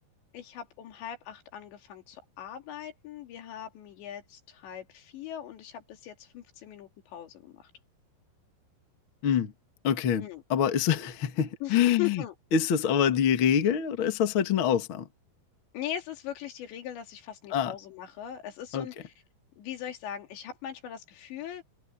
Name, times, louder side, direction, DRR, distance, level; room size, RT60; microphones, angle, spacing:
voice 1, 0.3-7.7 10.2-10.4 11.6-11.7 12.0-12.3 15.7-19.1 19.6-21.6, left 11 dB, 90° left, 4.9 m, -40 dB
voice 2, 9.8-12.2 12.5-15.1 17.5-17.7 18.7-18.9, left 8 dB, 50° left, 1.5 m, -25 dB
omnidirectional pair, 4.9 m